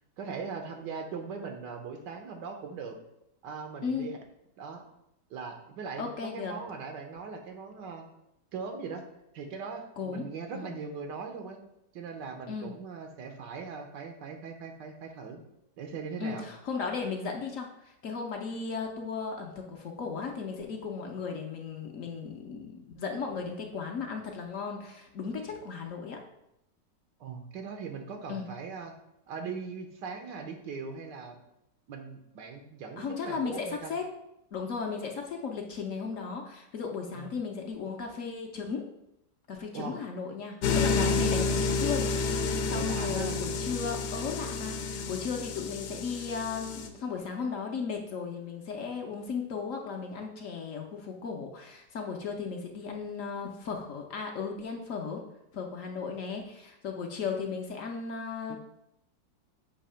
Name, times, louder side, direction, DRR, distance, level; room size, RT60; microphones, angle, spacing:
voice 1, 0.2-3.0 3.4-4.2 4.6-4.8 5.3-8.1 8.5-9.1 9.3-11.6 11.9-15.4 15.8-16.4 27.2-28.9 29.3-31.4 31.9-33.9 37.1-37.4 39.7-39.9 42.7-43.4 58.5-58.6, right 5 dB, 85° right, 4 dB, 1.5 m, -40 dB
voice 2, 3.8-4.1 6.0-6.5 10.0-10.3 10.5-10.8 12.5-12.8 16.2-26.2 28.3-28.5 33.0-34.1 34.5-38.9 39.5-55.2 55.5-58.6, left 5 dB, 60° left, 2 dB, 0.9 m, -36 dB
sound 1, 40.6-46.9, left 4 dB, 90° left, 1.3 m, -30 dB
7.2 x 2.8 x 5.5 m, 0.82 s
omnidirectional pair, 1.8 m